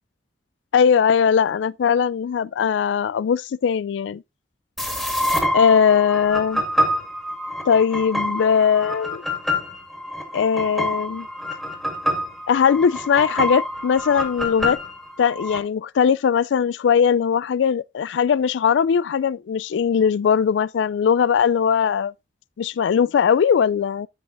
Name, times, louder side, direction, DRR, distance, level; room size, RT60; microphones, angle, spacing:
voice 1, 0.7-4.2 5.5-6.6 7.7-9.2 10.3-11.3 12.5-14.8 15.2-22.1 22.6-24.1, left 7 dB, 85° left, 0.3 m, -19 dB
sound 1, 4.8-15.6, left 1 dB, ahead, 2.0 m, -26 dB
13.0 x 5.6 x 2.6 m
head